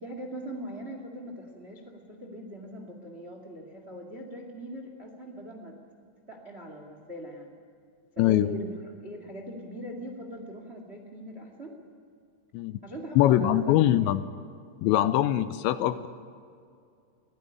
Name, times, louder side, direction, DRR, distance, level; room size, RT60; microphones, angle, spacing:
voice 1, 0.0-5.8 6.3-7.5 8.1-11.7 12.8-14.1, equal, 60° right, 4 dB, 0.6 m, -41 dB
voice 2, 8.2-8.5 12.5-12.8 13.2-14.2 14.8-16.1, left 13 dB, 80° left, 12 dB, 2.7 m, -22 dB
22.5 x 16.5 x 10.0 m, 2.4 s
omnidirectional pair, 5.5 m